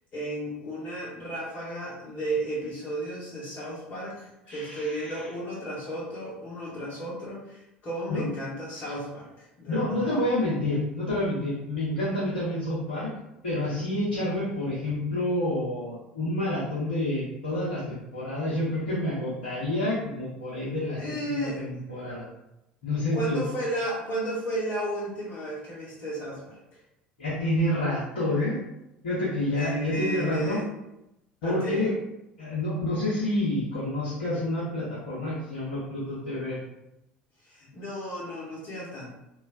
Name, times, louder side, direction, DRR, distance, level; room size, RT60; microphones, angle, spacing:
voice 1, 0.1-10.2 21.0-21.6 23.1-26.6 29.5-30.7 31.4-31.9 37.4-39.1, right 1 dB, 40° left, -8 dB, 1.0 m, -33 dB
voice 2, 4.5-5.2 8.1-8.2 9.7-13.1 13.4-21.0 21.3-22.2 22.8-23.4 27.2-28.6 29.0-30.6 31.4-31.9 32.4-36.6, left 1 dB, 75° left, -9 dB, 0.8 m, -28 dB
3.1 x 2.4 x 2.4 m, 0.88 s
figure-of-eight pair, 65°, 5 cm